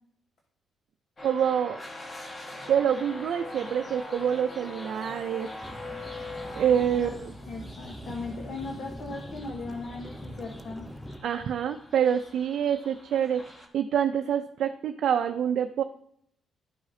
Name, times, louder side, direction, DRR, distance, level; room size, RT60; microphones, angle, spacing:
sound 1, 1.2-13.7, left 2 dB, 30° left, 1.4 m, -43 dB
voice 1, 1.2-1.8 2.7-5.5 6.6-7.3 11.2-15.8, right 8 dB, 65° right, 6 dB, 0.4 m, -26 dB
sound 2, 5.6-11.2, equal, ahead, 0.6 m, -43 dB
voice 2, 7.4-10.8, left 3 dB, 65° left, 1 dB, 1.1 m, -38 dB
12.0 x 4.8 x 2.7 m, 0.67 s
cardioid pair, 90°, 0 cm